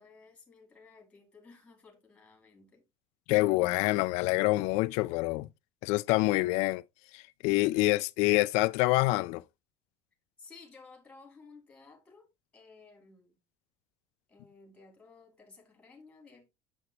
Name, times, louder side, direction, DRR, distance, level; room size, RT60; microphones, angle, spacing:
voice 1, 0.0-2.9 10.4-12.3 12.5-13.4 14.3-16.5, left 4 dB, 10° left, 2.4 m, -55 dB
voice 2, 3.3-5.5 5.8-6.8 7.1-9.4, left 20 dB, 60° left, 0.4 m, -26 dB
8.0 x 7.1 x 2.9 m
cardioid pair, 180°, 13 cm